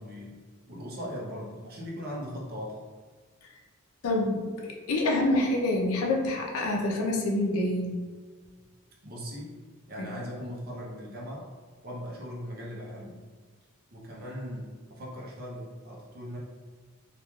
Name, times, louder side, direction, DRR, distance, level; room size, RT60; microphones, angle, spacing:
voice 1, 0.0-2.8 9.0-9.6 9.9-11.5 11.8-13.2 13.9-16.4, equal, 45° right, -3 dB, 0.6 m, -39 dB
voice 2, 4.0-8.0 10.0-10.1, left 1 dB, 85° left, 0 dB, 0.5 m, -27 dB
3.0 x 2.3 x 2.3 m, 1.5 s
head